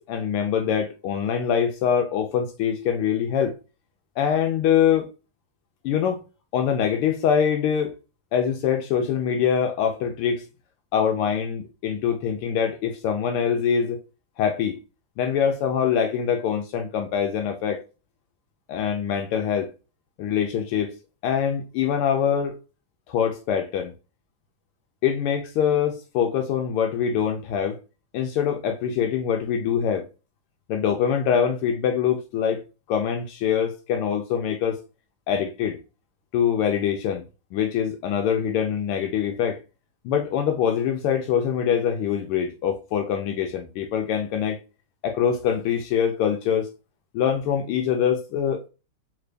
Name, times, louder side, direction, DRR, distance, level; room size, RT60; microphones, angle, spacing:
voice 1, 0.0-3.6 4.2-5.1 5.8-6.2 6.5-7.9 8.3-10.4 10.9-14.0 14.4-14.8 15.2-17.8 18.7-19.7 20.2-21.0 21.2-22.6 23.1-23.9 25.0-27.8 28.1-30.0 30.7-34.8 35.3-35.8 36.3-37.2 37.5-39.6 40.0-44.6 45.0-46.7 47.1-48.7, left 8 dB, 80° left, 1.5 m, -24 dB
3.8 x 2.5 x 3.2 m
omnidirectional pair, 2.4 m